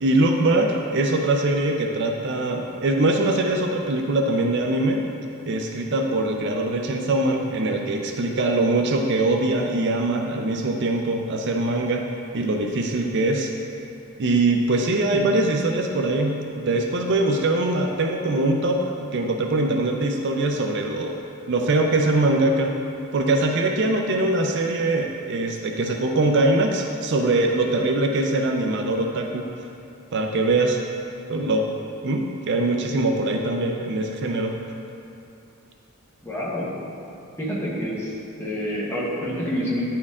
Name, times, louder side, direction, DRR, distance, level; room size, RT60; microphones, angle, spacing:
voice 1, 0.0-5.0 5.5-12.0 12.3-13.5 14.2-21.2 21.5-22.7 23.1-29.5 30.1-30.8 31.3-31.7 32.0-34.6, right 2 dB, 55° right, 2 dB, 0.4 m, -22 dB
voice 2, 36.2-36.7 37.4-38.1 38.4-39.8, equal, 10° left, -7 dB, 1.1 m, -27 dB
9.6 x 4.4 x 3.6 m, 2.7 s
head